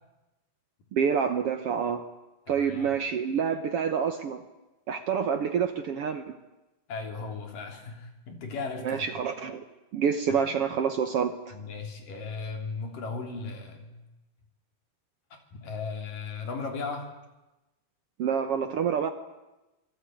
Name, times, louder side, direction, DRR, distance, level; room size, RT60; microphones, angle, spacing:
voice 1, 0.9-2.0 2.5-4.4 4.9-6.3 8.8-9.6 9.9-11.3 18.2-19.1, right 7 dB, 85° right, 8 dB, 1.3 m, -27 dB
voice 2, 2.5-3.0 6.9-9.1 10.3-10.5 11.5-13.9 15.6-17.1, left 4 dB, 60° left, 4 dB, 4.9 m, -36 dB
27.5 x 19.5 x 9.3 m, 1.0 s
omnidirectional pair, 4.3 m